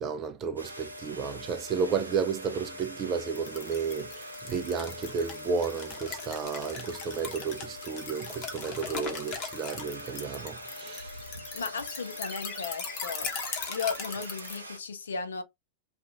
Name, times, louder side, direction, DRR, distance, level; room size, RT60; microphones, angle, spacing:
voice 1, 0.0-11.1, right 6 dB, 30° right, 0.5 m, -32 dB
sound 1, 0.6-14.8, equal, 85° right, 0.5 m, -43 dB
sound 2, 3.3-14.6, left 5 dB, 35° left, 1.0 m, -39 dB
voice 2, 11.5-13.3 13.7-15.4, left 5 dB, 70° left, 0.5 m, -35 dB
2.4 x 2.4 x 2.8 m
figure-of-eight pair, 90°, 0 cm